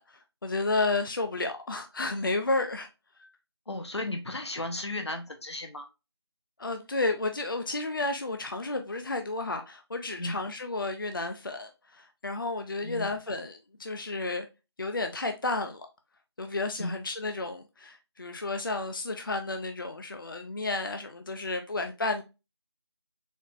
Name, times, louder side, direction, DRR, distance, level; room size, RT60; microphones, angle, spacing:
voice 1, 0.0-2.9 3.2-3.3 6.6-14.5 14.8-15.9 16.4-22.2, left 2 dB, 50° left, 0.4 m, -32 dB
voice 2, 3.7-5.9 10.2-10.3 12.8-13.1 16.8-16.9, left 1 dB, 75° left, 0.8 m, -35 dB
4.1 x 2.9 x 2.5 m
figure-of-eight pair, 165°, 14 cm